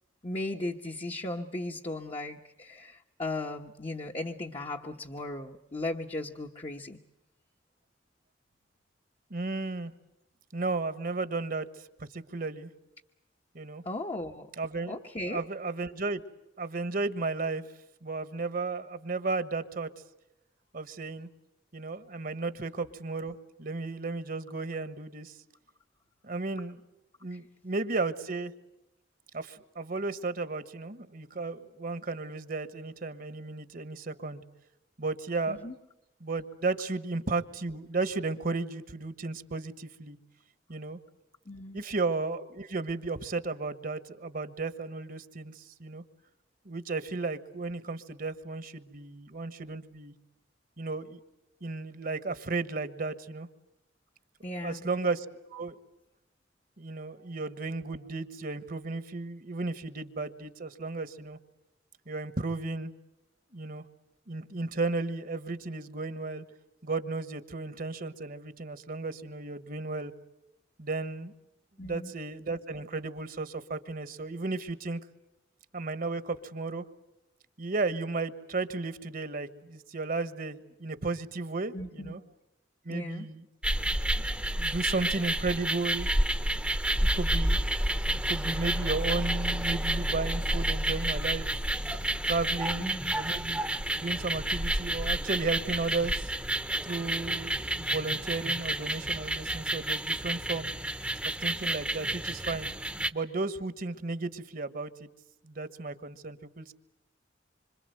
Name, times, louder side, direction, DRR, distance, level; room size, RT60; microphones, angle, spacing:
voice 1, 0.2-7.0 13.8-14.5 14.9-15.4 27.3-27.4 35.5-35.7 41.5-41.8 54.4-54.9 71.8-72.1 81.7-82.2 82.9-83.3 92.8-93.2, left 2 dB, 30° left, 2 dB, 1.1 m, -37 dB
voice 2, 9.3-9.9 10.5-11.7 12.0-12.7 13.5-13.8 14.6-15.0 15.3-16.2 16.6-17.6 18.0-19.9 20.7-21.3 21.7-25.4 26.2-26.8 27.2-28.5 29.3-34.4 35.0-35.7 36.2-40.2 40.7-41.0 41.7-46.0 46.6-50.1 50.8-51.2 51.6-53.5 54.6-55.2 55.5-55.8 56.8-61.4 62.1-62.9 63.5-63.8 64.3-66.4 66.8-70.1 70.8-71.3 71.8-75.0 75.7-76.8 77.6-82.2 82.8-83.4 84.6-86.1 87.1-87.6 88.1-91.5 92.2-96.3 96.8-100.7 101.2-102.7 103.1-105.1 105.4-106.7, right 3 dB, 50° right, 12 dB, 1.3 m, -34 dB
sound 1, 83.6-103.1, right 1 dB, 5° right, 1.0 m, -30 dB
26.5 x 26.0 x 7.8 m, 0.89 s
head